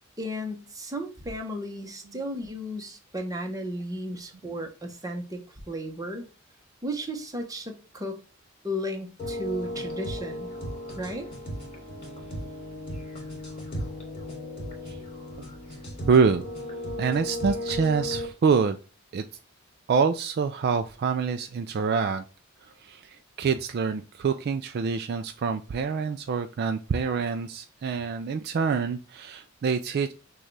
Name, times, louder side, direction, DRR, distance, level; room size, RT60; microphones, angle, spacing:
voice 1, 0.2-5.4 5.7-6.2 6.8-8.2 8.6-10.5 11.0-11.3, equal, 15° right, 4 dB, 0.9 m, -34 dB
sound 1, 9.2-18.3, left 1 dB, 30° left, 2.4 m, -35 dB
voice 2, 16.1-16.4 17.0-18.8 19.1-19.2 19.9-22.2 22.6-30.1, right 5 dB, 50° right, 8 dB, 0.3 m, -26 dB
6.3 x 2.4 x 3.2 m, 0.34 s
head